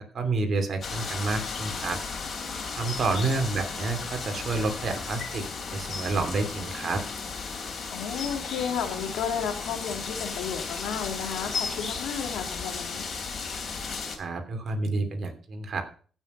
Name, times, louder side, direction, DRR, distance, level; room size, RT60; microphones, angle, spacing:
voice 1, 0.1-2.0 2.8-5.5 5.7-7.0 14.2-15.8, right 3 dB, 50° right, 5 dB, 2.8 m, -29 dB
sound 1, 0.8-14.2, left 5 dB, 50° left, 3.4 m, -35 dB
voice 2, 7.9-13.0, left 7 dB, 85° left, 4 dB, 2.7 m, -33 dB
15.0 x 6.4 x 5.5 m, 0.42 s
cardioid pair, 90°, 0 cm